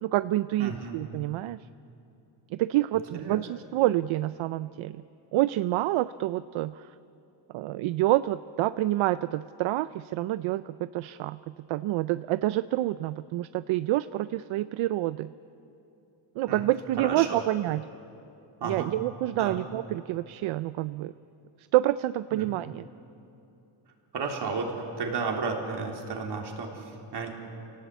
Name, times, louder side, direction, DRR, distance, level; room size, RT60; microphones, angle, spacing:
voice 1, 0.0-1.6 2.5-5.0 5.3-6.9 7.5-11.4 11.7-15.3 16.4-17.8 18.6-21.1 21.7-22.8, right 15 dB, 85° right, 14 dB, 0.6 m, -27 dB
voice 2, 0.6-1.0 3.1-3.4 16.5-16.6 17.0-17.5 18.6-19.0 19.3-19.6 22.3-22.5 24.1-27.3, right 4 dB, 60° right, 1 dB, 3.6 m, -33 dB
28.0 x 18.0 x 8.2 m, 2.8 s
cardioid pair, 130°, 46 cm